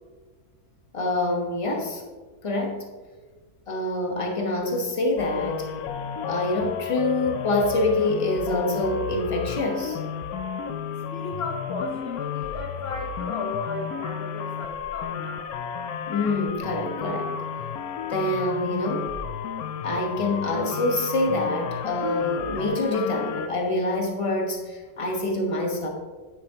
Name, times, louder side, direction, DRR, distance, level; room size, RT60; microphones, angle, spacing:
voice 1, 0.9-2.0 2.4-2.9 3.7-5.7 6.2-10.0 16.1-17.3 18.1-19.1 19.8-25.9, left 2 dB, 25° left, 2 dB, 1.1 m, -26 dB
sound 1, 5.2-23.5, left 7 dB, 75° left, 1.1 m, -32 dB
voice 2, 11.1-15.5, left 3 dB, 50° left, 1 dB, 0.9 m, -34 dB
9.7 x 8.1 x 2.9 m, 1.4 s
omnidirectional pair, 1.6 m